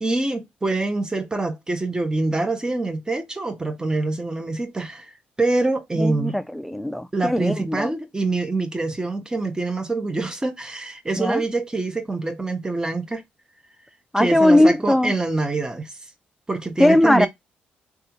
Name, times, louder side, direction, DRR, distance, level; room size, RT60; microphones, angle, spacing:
voice 1, 0.0-6.4 7.1-13.2 14.2-15.9 16.5-17.3, right 2 dB, 20° right, 0.9 m, -25 dB
voice 2, 6.0-7.9 11.2-11.4 14.1-15.1 16.8-17.3, left 1 dB, ahead, 0.3 m, -19 dB
3.4 x 2.4 x 2.9 m
supercardioid pair, 65°, 4 cm